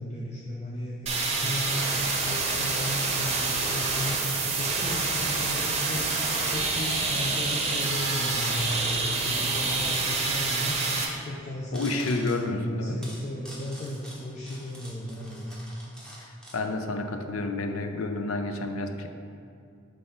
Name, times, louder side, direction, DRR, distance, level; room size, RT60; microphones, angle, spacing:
voice 1, 0.0-6.2 6.5-10.8 11.2-11.9 12.3-15.6, left 1 dB, 35° left, -4 dB, 0.5 m, -35 dB
sound 1, 1.1-11.1, right 3 dB, 30° right, 0.7 m, -27 dB
sound 2, 6.3-7.2 7.5-7.6 8.2-8.7 8.9-9.0 10.0-10.7 11.7-12.4 13.0-16.6, equal, 5° left, 0.9 m, -45 dB
voice 2, 11.7-13.0 16.5-19.1, left 2 dB, 85° left, 6 dB, 0.5 m, -30 dB
5.4 x 3.4 x 5.6 m, 2.5 s
head